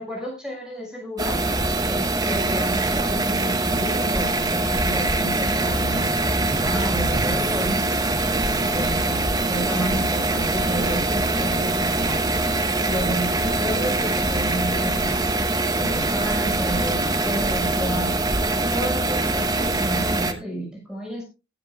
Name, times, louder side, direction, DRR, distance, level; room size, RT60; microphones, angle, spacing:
voice 1, 0.0-1.4 1.9-8.0 8.6-12.2 12.9-15.3 15.7-18.2 18.7-21.2, right 1 dB, 5° right, 0 dB, 6.0 m, -31 dB
sound 1, 1.2-20.3, right 2 dB, 20° right, 1.1 m, -23 dB
16.0 x 12.5 x 2.4 m, 0.30 s
head